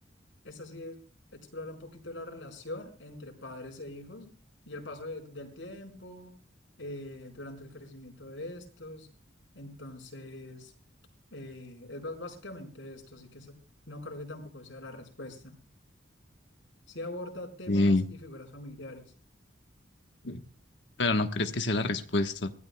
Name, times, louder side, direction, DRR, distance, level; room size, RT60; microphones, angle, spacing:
voice 1, 0.4-1.0 1.3-4.3 4.6-6.3 6.8-9.1 9.5-10.7 11.3-13.6 13.9-15.6 16.9-19.1, left 1 dB, 80° left, 1 dB, 4.5 m, -43 dB
voice 2, 17.7-18.0 20.2-20.4 21.0-22.5, left 2 dB, 65° left, 7 dB, 1.1 m, -26 dB
25.0 x 16.0 x 2.2 m, 0.39 s
head